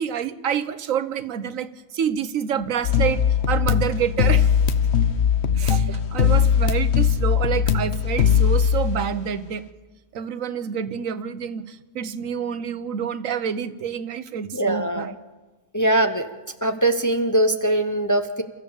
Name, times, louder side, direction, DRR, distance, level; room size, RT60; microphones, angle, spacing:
voice 1, 0.0-1.7 1.9-4.5 5.6-9.6 10.1-15.2, right 8 dB, 80° right, 12 dB, 1.3 m, -28 dB
sound 1, 2.8-9.2, left 7 dB, 55° left, 1.1 m, -20 dB
voice 2, 14.5-15.1 15.7-16.3 16.6-18.4, right 1 dB, 15° left, 7 dB, 0.7 m, -21 dB
29.5 x 14.0 x 7.1 m, 1.2 s
omnidirectional pair, 1.4 m